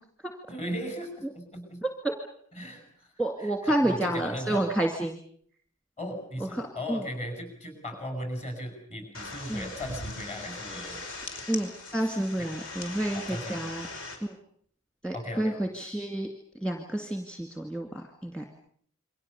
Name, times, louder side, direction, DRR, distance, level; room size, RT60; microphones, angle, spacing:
voice 1, 0.5-1.8 2.5-3.1 3.4-4.6 6.0-11.0 12.4-12.5 13.1-13.6 15.1-15.6, equal, 30° left, 6 dB, 7.9 m, -37 dB
voice 2, 1.8-2.1 3.2-5.2 6.5-7.0 9.5-9.7 11.5-13.9 14.2-14.3 15.0-16.3 16.6-18.4, right 1 dB, 5° left, 4 dB, 2.1 m, -29 dB
sound 1, 9.1-14.2, left 2 dB, 60° left, 5.6 m, -40 dB
29.0 x 24.0 x 7.0 m, 0.62 s
head